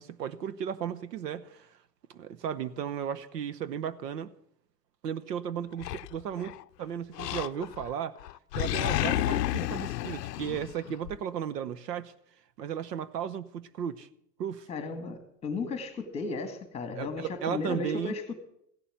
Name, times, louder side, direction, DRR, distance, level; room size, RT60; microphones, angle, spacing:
voice 1, 0.0-1.7 2.1-4.3 5.0-8.2 8.5-12.1 12.6-14.1 14.4-14.7 16.9-18.1, right 8 dB, 80° right, 1.1 m, -35 dB
Animal, 5.8-6.6 7.2-7.9 8.2-11.2, left 15 dB, 80° left, 0.6 m, -31 dB
voice 2, 14.7-18.3, left 4 dB, 15° left, 1.8 m, -35 dB
15.5 x 7.1 x 8.9 m
hypercardioid pair, 145°, 48 cm